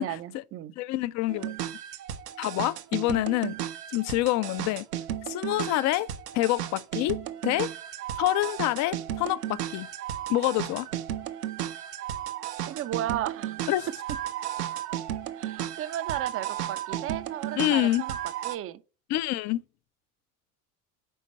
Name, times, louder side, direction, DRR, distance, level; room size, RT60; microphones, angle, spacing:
voice 1, 0.0-0.7 12.7-13.7 15.4-18.2 18.4-18.8, right 12 dB, 30° right, 0.5 m, -34 dB
voice 2, 0.8-1.5 2.4-3.6 3.9-4.9 5.3-6.1 6.3-7.7 8.2-9.9 10.3-10.9 13.7-13.9 17.6-18.0 19.1-19.6, left 16 dB, 40° left, 0.4 m, -27 dB
sound 1, 1.3-18.6, right 11 dB, 80° right, 0.7 m, -34 dB
5.4 x 4.3 x 4.2 m
figure-of-eight pair, 65°, 46 cm